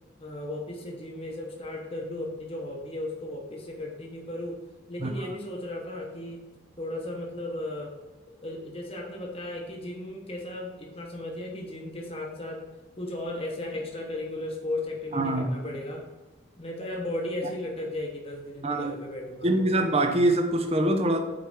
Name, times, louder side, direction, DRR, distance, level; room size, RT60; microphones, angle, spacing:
voice 1, 0.2-7.9 8.3-12.7 13.0-16.1 16.6-19.7, left 1 dB, 30° left, 0.9 m, -35 dB
voice 2, 15.1-15.6 18.6-18.9 19.4-21.2, right 1 dB, 30° right, 0.7 m, -24 dB
5.1 x 4.6 x 5.9 m
head